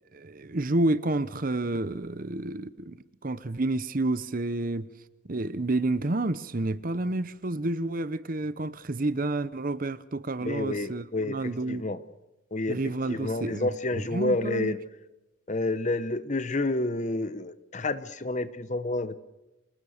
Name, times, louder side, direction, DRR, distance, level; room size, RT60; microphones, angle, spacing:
voice 1, 0.1-3.0 3.2-4.9 5.3-11.9 12.7-14.8, right 2 dB, 45° right, 0.8 m, -29 dB
voice 2, 10.4-11.4 11.7-12.0 12.5-12.8 13.1-14.8 15.5-19.1, left 2 dB, 35° left, 1.0 m, -29 dB
27.0 x 19.5 x 6.5 m
head